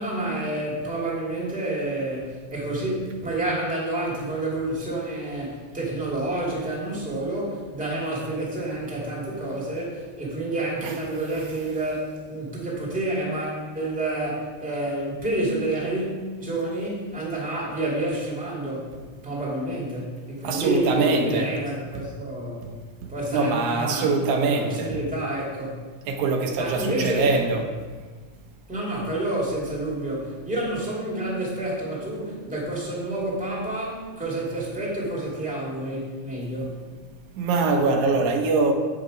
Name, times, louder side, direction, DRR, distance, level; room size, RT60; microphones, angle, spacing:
voice 1, 0.0-18.9 19.2-22.6 23.1-24.1 24.4-25.8 26.6-27.3 28.7-36.8, right 1 dB, 5° right, -5 dB, 2.1 m, -29 dB
voice 2, 20.4-21.6 23.3-25.0 26.1-27.7 37.4-38.7, right 3 dB, 80° right, 3 dB, 2.3 m, -23 dB
8.5 x 6.6 x 5.1 m, 1.4 s
omnidirectional pair, 3.4 m